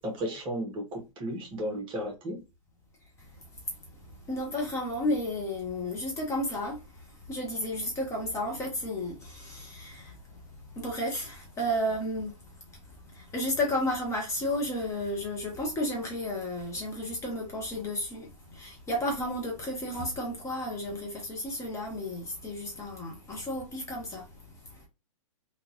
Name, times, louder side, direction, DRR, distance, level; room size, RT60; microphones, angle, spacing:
voice 1, 0.0-2.4, equal, 25° right, 1.3 m, -34 dB
voice 2, 3.9-24.9, left 1 dB, 15° left, 1.0 m, -33 dB
3.6 x 2.5 x 2.9 m
hypercardioid pair, 125°, 18 cm